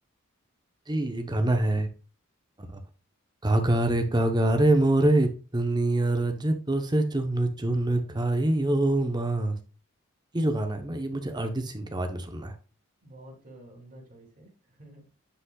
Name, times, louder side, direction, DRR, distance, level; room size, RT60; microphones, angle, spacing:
voice 1, 0.9-1.9 2.6-2.8 3.4-9.6 10.3-12.5, right 1 dB, 20° right, 0.9 m, -25 dB
voice 2, 13.0-15.1, right 1 dB, 40° right, 2.9 m, -50 dB
9.9 x 5.2 x 2.3 m
head